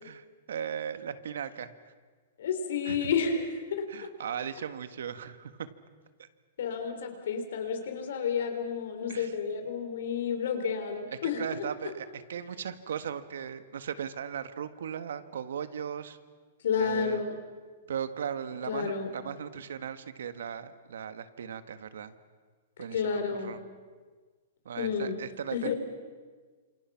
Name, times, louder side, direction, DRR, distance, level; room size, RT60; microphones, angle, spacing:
voice 1, 0.0-1.7 2.8-3.1 3.9-5.7 6.2-6.3 9.1-9.3 11.1-16.2 16.8-17.3 17.9-22.1 22.8-23.6 24.6-25.7, right 8 dB, 80° right, 12 dB, 1.6 m, -37 dB
voice 2, 2.4-4.1 6.6-11.7 16.6-17.4 18.7-19.1 22.9-23.6 24.8-25.2 25.5-25.7, left 6 dB, 65° left, 6 dB, 4.2 m, -31 dB
28.5 x 27.5 x 5.9 m, 1.5 s
hypercardioid pair, 175°, 0 cm